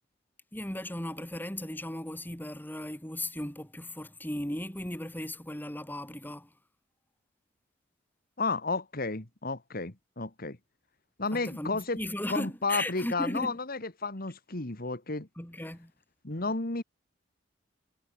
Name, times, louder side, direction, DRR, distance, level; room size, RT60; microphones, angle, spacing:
voice 1, 0.5-6.5 11.3-13.6 15.4-15.9, left 1 dB, 10° left, 3.2 m, -36 dB
voice 2, 8.4-10.6 11.2-12.0 12.3-15.3 16.2-16.8, left 3 dB, 50° left, 2.3 m, -32 dB
head